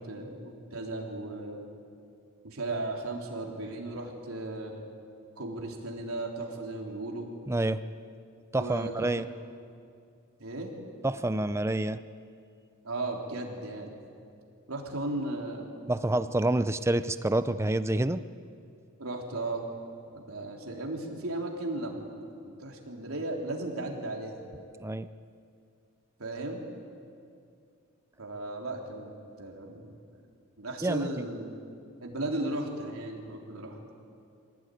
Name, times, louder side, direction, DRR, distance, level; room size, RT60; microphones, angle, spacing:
voice 1, 0.0-1.7 2.4-4.8 5.4-7.3 8.5-9.4 10.4-10.7 12.8-14.0 14.7-15.8 19.0-19.7 20.1-22.2 22.4-24.5 26.2-26.6 28.2-29.1 29.4-30.0 30.6-31.6 32.0-33.8, right 2 dB, 75° right, 0 dB, 3.6 m, -36 dB
voice 2, 7.5-7.8 8.5-9.2 11.0-12.0 15.9-18.2 24.8-25.1 30.8-31.1, right 1 dB, 10° right, 12 dB, 0.5 m, -27 dB
24.0 x 18.0 x 9.3 m, 2.4 s
head